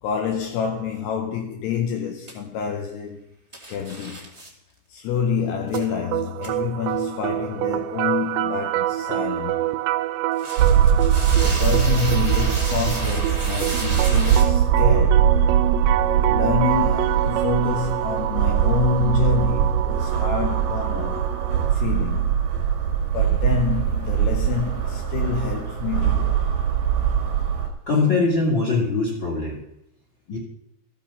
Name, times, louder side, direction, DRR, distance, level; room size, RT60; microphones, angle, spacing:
voice 1, 0.0-3.3 3.7-4.3 4.9-9.7 11.3-15.3 16.2-21.3 21.7-22.4 23.1-26.4, left 6 dB, 75° left, 2.8 m, -27 dB
sound 1, 2.3-2.4 3.5-4.5 5.7-5.8 6.4-6.5 10.3-14.4, right 1 dB, 15° right, 1.0 m, -33 dB
sound 2, 5.7-21.7, right 14 dB, 85° right, 2.7 m, -27 dB
sound 3, 10.6-27.7, right 8 dB, 60° right, 2.7 m, -21 dB
voice 2, 27.9-29.6 30.3-30.4, left 3 dB, 35° left, 2.2 m, -21 dB
14.0 x 7.6 x 5.6 m
omnidirectional pair, 5.1 m